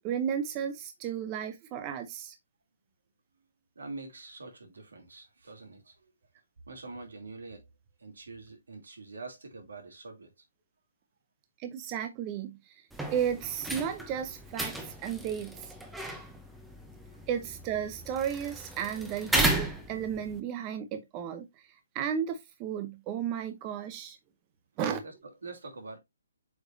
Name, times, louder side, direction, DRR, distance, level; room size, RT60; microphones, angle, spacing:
voice 1, 0.0-2.3 11.6-12.8 13.1-15.7 17.3-21.5 21.9-24.2 24.8-25.0, right 8 dB, 25° right, 0.8 m, -33 dB
voice 2, 3.7-5.9 6.7-7.7 8.0-10.3 25.0-26.0, right 3 dB, 80° right, 2.9 m, -45 dB
sound 1, 12.9-20.4, right 1 dB, 5° right, 1.0 m, -34 dB
7.9 x 4.9 x 2.7 m
hypercardioid pair, 150°, 0 cm